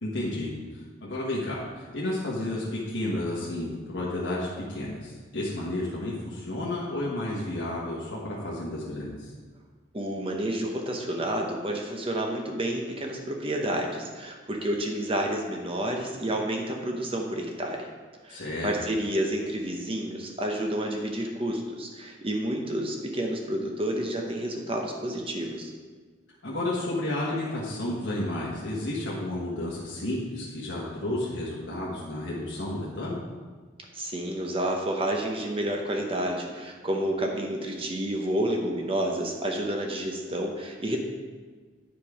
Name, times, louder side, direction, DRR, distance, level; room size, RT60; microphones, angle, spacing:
voice 1, 0.0-9.3 18.3-18.7 26.4-33.2, left 1 dB, 70° left, -6 dB, 1.4 m, -32 dB
voice 2, 9.9-17.9 18.2-25.7 33.9-41.0, right 1 dB, 30° right, 1 dB, 0.9 m, -30 dB
9.1 x 5.2 x 4.9 m, 1.5 s
head